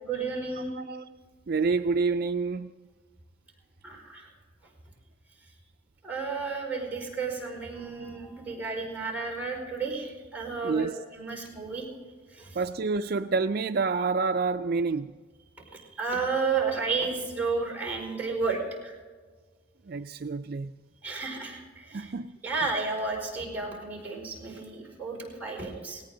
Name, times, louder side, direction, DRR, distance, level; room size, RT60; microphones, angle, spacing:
voice 1, 0.0-0.8 3.8-4.3 6.0-11.8 12.3-12.6 15.7-18.9 21.0-22.1 22.4-26.0, right 4 dB, 10° right, 4.9 m, -32 dB
voice 2, 1.5-2.7 8.4-8.5 10.6-10.9 12.6-15.1 19.9-20.7 21.9-22.3, right 4 dB, 50° right, 0.4 m, -28 dB
18.5 x 18.0 x 3.9 m
head